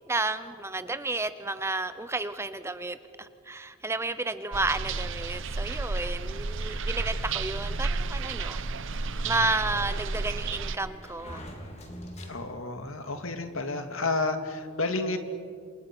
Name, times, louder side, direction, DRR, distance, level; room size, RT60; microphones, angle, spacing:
voice 1, 0.1-8.6 8.9-11.4, right 2 dB, 10° right, 12 dB, 0.7 m, -32 dB
sound 1, 4.5-10.8, right 3 dB, 60° right, 0.9 m, -32 dB
Sliding door, 8.1-12.8, equal, 30° left, 3.4 m, -46 dB
voice 2, 12.3-15.2, left 3 dB, 65° left, 7 dB, 2.2 m, -30 dB
28.0 x 27.5 x 6.1 m, 2.3 s
head